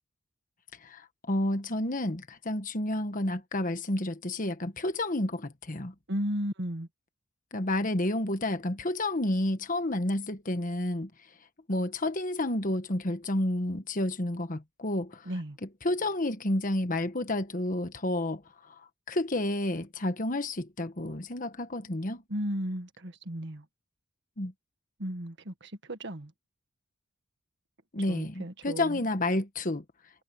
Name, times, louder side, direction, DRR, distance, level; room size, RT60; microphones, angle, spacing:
voice 1, 0.8-5.9 7.5-11.1 11.7-15.3 15.6-18.8 19.1-22.2 24.4-24.5 27.9-29.8, left 1 dB, 40° left, 1.3 m, -30 dB
voice 2, 6.1-6.9 15.3-15.6 22.3-23.6 25.0-26.3 28.1-29.0, equal, 55° right, 1.7 m, -34 dB
head